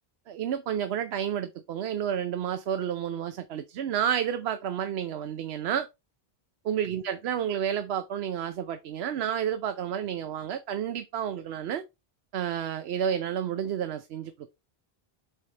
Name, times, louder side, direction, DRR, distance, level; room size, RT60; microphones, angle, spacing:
voice 1, 0.3-5.9 6.6-11.8 12.3-14.5, right 9 dB, 80° right, 0.9 m, -30 dB
7.5 x 3.2 x 4.0 m
omnidirectional pair, 1.1 m